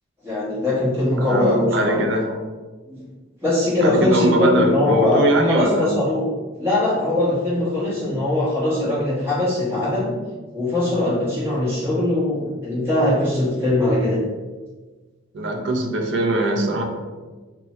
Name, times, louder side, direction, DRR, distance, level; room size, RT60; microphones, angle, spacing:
voice 1, 0.2-2.0 2.9-3.0 3.4-6.3 6.6-10.1 10.5-14.2, left 1 dB, 10° right, -10 dB, 1.2 m, -21 dB
voice 2, 1.2-2.3 3.8-5.9 7.9-8.1 15.3-16.8, right 1 dB, 60° right, 2 dB, 0.5 m, -21 dB
2.7 x 2.2 x 3.0 m, 1.3 s
head